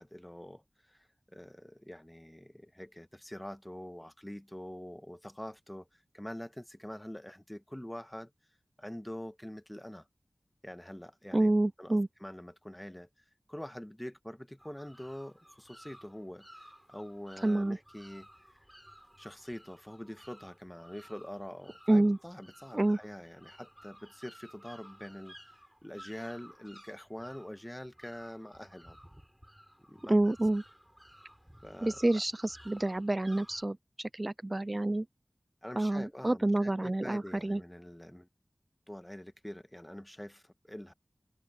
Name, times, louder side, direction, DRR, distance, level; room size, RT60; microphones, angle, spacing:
voice 1, 0.0-8.3 8.8-10.1 10.6-11.5 11.8-13.1 13.5-18.3 19.2-25.3 25.8-29.0 29.9-30.2 31.6-32.2 35.6-38.3 38.9-40.9, equal, 10° left, 1.4 m, -45 dB
voice 2, 11.3-12.1 17.4-17.8 21.9-22.2 22.7-23.0 30.1-30.6 31.8-35.1 35.8-37.6, right 1 dB, 35° right, 0.3 m, -28 dB
sound 1, 14.6-33.7, equal, 5° right, 6.6 m, -56 dB
wide cardioid pair, 45°, 0 cm